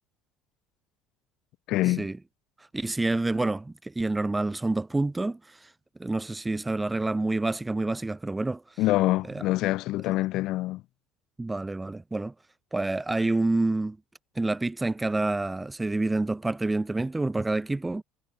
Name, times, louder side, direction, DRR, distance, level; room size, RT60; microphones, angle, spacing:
voice 1, 1.7-2.1 8.8-10.8, left 17 dB, 60° left, 1.3 m, -25 dB
voice 2, 2.7-5.7 6.0-8.8 9.3-9.4 11.4-12.3 12.7-14.0 14.4-18.0, right 2 dB, 10° right, 2.0 m, -28 dB
supercardioid pair, 115°, 0 cm